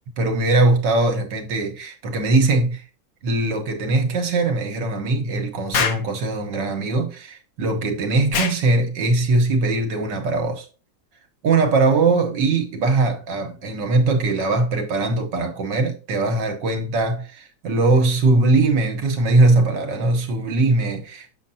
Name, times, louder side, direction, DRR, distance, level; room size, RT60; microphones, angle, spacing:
voice 1, 0.2-2.8 3.2-10.7 11.4-21.3, right 3 dB, 70° right, 1.7 m, -20 dB
Explosion, 5.7-6.1 8.3-8.6, left 6 dB, 60° left, 1.1 m, -23 dB
7.1 x 6.4 x 2.7 m
omnidirectional pair, 2.0 m